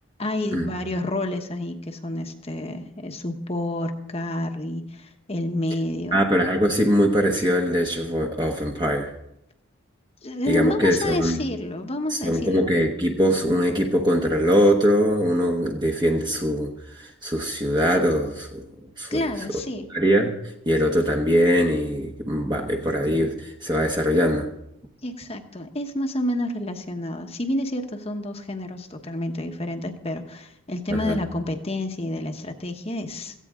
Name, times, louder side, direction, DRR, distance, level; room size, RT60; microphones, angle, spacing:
voice 1, 0.2-6.2 10.2-12.7 19.1-19.9 25.0-33.3, left 1 dB, 30° left, 5 dB, 1.1 m, -29 dB
voice 2, 6.1-9.1 10.5-11.4 12.1-18.7 19.0-19.3 19.9-20.3 20.7-24.5 30.9-31.2, equal, 20° right, 0 dB, 1.0 m, -22 dB
17.0 x 15.0 x 3.7 m, 0.80 s
head